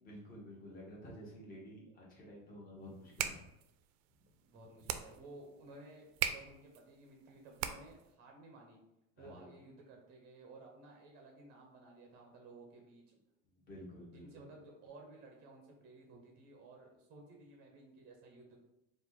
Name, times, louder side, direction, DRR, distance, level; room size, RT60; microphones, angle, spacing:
voice 1, 0.0-3.4 9.2-9.5 13.7-14.3, equal, 25° left, -4 dB, 1.1 m, -51 dB
sound 1, 2.9-8.1, right 10 dB, 80° right, 0.5 m, -41 dB
voice 2, 4.4-8.8 9.2-13.2 14.1-18.6, right 2 dB, 25° right, 1 dB, 0.6 m, -56 dB
4.6 x 2.5 x 4.0 m, 0.88 s
cardioid pair, 180°, 38 cm